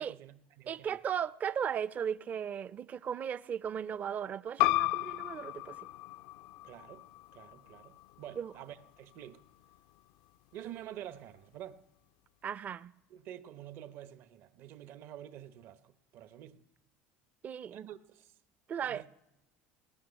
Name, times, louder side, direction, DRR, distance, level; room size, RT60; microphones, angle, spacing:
voice 1, 0.0-1.0 6.6-7.0 7.3-9.4 10.5-11.8 13.1-16.6 17.7-18.3 18.8-19.0, right 11 dB, 60° right, 0.9 m, -48 dB
voice 2, 0.7-5.8 8.4-8.5 12.4-12.9 17.4-17.9 18.7-19.0, right 8 dB, 35° right, 0.5 m, -36 dB
sound 1, 4.6-9.8, left 18 dB, 75° left, 0.4 m, -35 dB
18.0 x 6.2 x 9.7 m
supercardioid pair, 105°, 4 cm